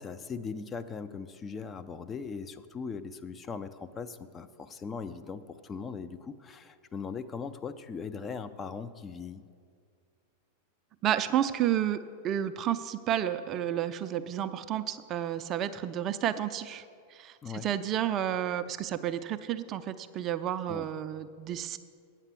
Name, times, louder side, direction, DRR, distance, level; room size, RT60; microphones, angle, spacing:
voice 1, 0.0-9.4 17.4-17.7 20.7-20.9, left 5 dB, 20° left, 9 dB, 0.5 m, -39 dB
voice 2, 11.0-12.0 12.2-16.8 17.1-17.3 17.6-21.8, right 11 dB, 35° right, 12 dB, 0.4 m, -31 dB
9.0 x 7.3 x 6.8 m, 2.2 s
figure-of-eight pair, 90°, 0 cm